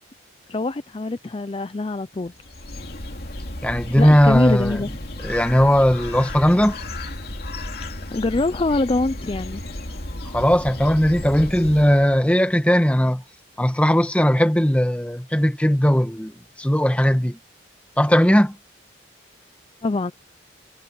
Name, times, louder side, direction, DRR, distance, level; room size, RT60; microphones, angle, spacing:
voice 1, 0.5-2.3 4.0-4.9 8.1-9.6 10.2-10.3 19.8-20.1, left 2 dB, 30° left, 0.4 m, -24 dB
Bird, 2.3-12.3, left 1 dB, 55° left, 2.8 m, -33 dB
voice 2, 3.6-4.8 5.2-6.8 10.3-13.2 13.6-17.4 18.0-18.6, equal, 5° left, 1.2 m, -18 dB
head